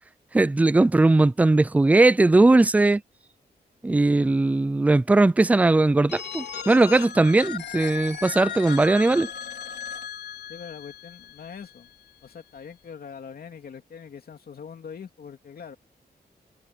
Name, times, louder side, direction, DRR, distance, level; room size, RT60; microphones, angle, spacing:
voice 1, 0.3-3.0 3.8-9.3, right 2 dB, 10° right, 0.3 m, -19 dB
Telephone, 6.1-11.9, left 7 dB, 80° left, 3.5 m, -36 dB
voice 2, 10.5-11.9 12.2-15.8, left 6 dB, 65° left, 2.6 m, -42 dB
wide cardioid pair, 180°, 17 cm